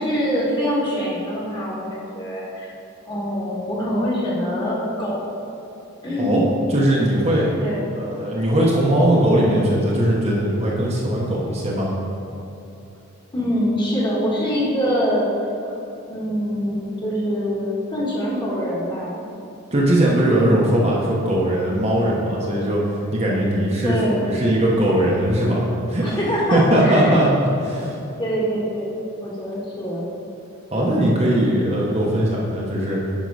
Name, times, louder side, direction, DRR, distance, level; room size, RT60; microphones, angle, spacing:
voice 1, 0.0-2.7 3.1-5.2 6.0-6.4 7.6-7.8 13.3-15.7 16.1-19.2 23.8-24.2 26.0-27.2 28.2-30.1, equal, 20° left, -6 dB, 1.6 m, -24 dB
voice 2, 6.7-7.5 7.9-11.9 19.7-22.8 23.1-26.2 26.5-27.3 27.6-28.0 30.7-33.0, right 1 dB, 30° right, -4 dB, 1.1 m, -19 dB
9.3 x 5.5 x 4.9 m, 2.8 s
head